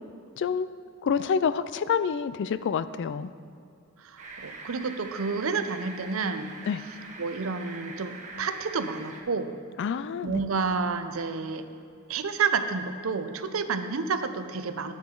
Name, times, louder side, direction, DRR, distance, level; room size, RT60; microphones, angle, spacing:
voice 1, 0.4-0.7 1.0-3.3 6.7-6.8 9.8-10.4, left 6 dB, 55° left, 14 dB, 0.3 m, -27 dB
voice 2, 4.0-6.5 7.2-9.5 10.2-11.6 12.1-14.9, right 4 dB, 70° right, 9 dB, 0.6 m, -30 dB
sound 1, 4.2-9.2, right 3 dB, 35° right, 1.0 m, -43 dB
11.5 x 8.2 x 3.8 m, 2.3 s
head